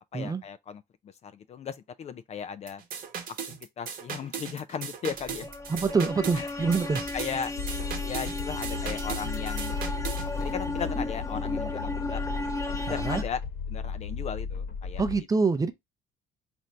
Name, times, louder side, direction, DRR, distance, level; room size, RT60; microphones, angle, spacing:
voice 1, 0.1-2.8 3.8-5.5 6.3-6.5 7.1-7.5 8.0-9.8 10.4-12.2 12.7-13.4 13.7-15.0, left 7 dB, 40° left, 0.4 m, -36 dB
sound 1, 2.7-10.3, right 7 dB, 55° right, 0.9 m, -38 dB
sound 2, 5.1-13.2, left 2 dB, 20° left, 0.7 m, -35 dB
voice 2, 5.7-7.0 12.9-13.2 15.0-15.7, right 4 dB, 20° right, 0.5 m, -26 dB
sound 3, 7.5-15.2, left 5 dB, 65° left, 1.2 m, -35 dB
4.2 x 2.6 x 3.2 m
cardioid pair, 110°, 17 cm